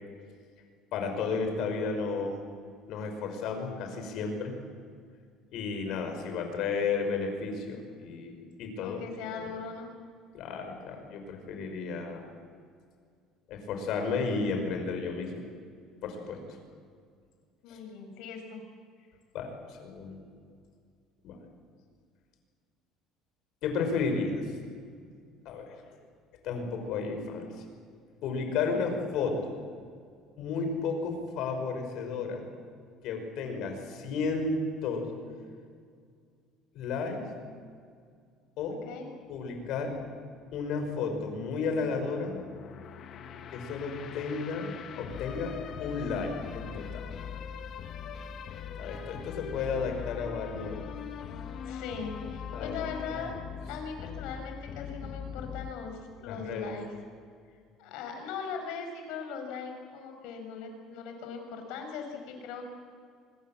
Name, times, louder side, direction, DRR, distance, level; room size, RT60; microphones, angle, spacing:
voice 1, 0.9-2.4 2.9-4.5 5.5-9.0 9.4-9.5 10.3-12.2 13.5-15.3 16.0-16.4 17.7-17.8 19.3-20.2 21.2-21.4 23.6-24.4 25.5-25.8 26.4-27.5 28.2-29.5 30.4-32.4 33.0-35.1 36.7-37.3 38.6-38.8 39.3-39.9 40.5-42.4 43.5-47.1 48.8-50.9 52.5-52.8 56.3-56.7, left 4 dB, 65° left, 5 dB, 5.7 m, -33 dB
voice 2, 8.8-9.9 17.6-18.6 28.7-28.9 38.9-39.1 51.7-53.3 53.7-56.9 57.8-62.6, left 5 dB, 80° left, 4 dB, 5.8 m, -39 dB
sound 1, 41.1-55.7, left 7 dB, 45° left, 1.7 m, -41 dB
25.0 x 21.5 x 7.5 m, 2.1 s
cardioid pair, 135°, 0 cm